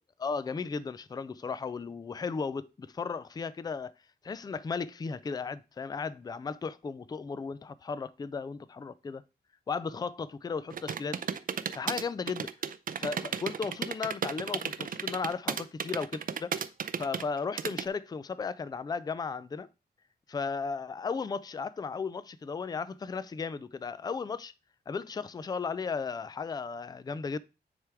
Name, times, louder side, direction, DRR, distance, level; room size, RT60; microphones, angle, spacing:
voice 1, 0.2-3.9 4.2-9.2 9.7-11.2 11.7-12.5 13.0-16.5 17.0-19.7 20.3-24.5 24.9-27.4, left 5 dB, 20° left, 0.3 m, -35 dB
sound 1, 10.7-17.8, right 7 dB, 50° right, 0.5 m, -34 dB
9.7 x 3.5 x 4.7 m
wide cardioid pair, 160°, 18 cm